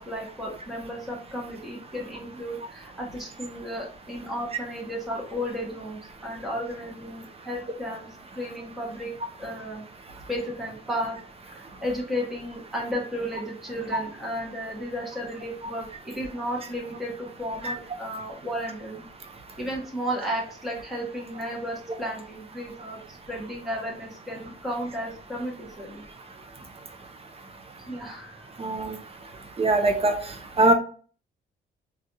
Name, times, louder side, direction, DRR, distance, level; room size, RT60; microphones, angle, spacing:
voice 1, 0.0-8.1 8.3-9.1 9.4-9.8 10.3-11.2 11.5-19.0 19.6-26.0 27.8-28.6, equal, ahead, -3 dB, 1.1 m, -33 dB
voice 2, 28.6-29.0 29.6-30.1 30.6-30.7, right 2 dB, 30° right, 4 dB, 0.7 m, -21 dB
3.2 x 2.4 x 2.7 m, 0.42 s
cardioid pair, 90°, 20 cm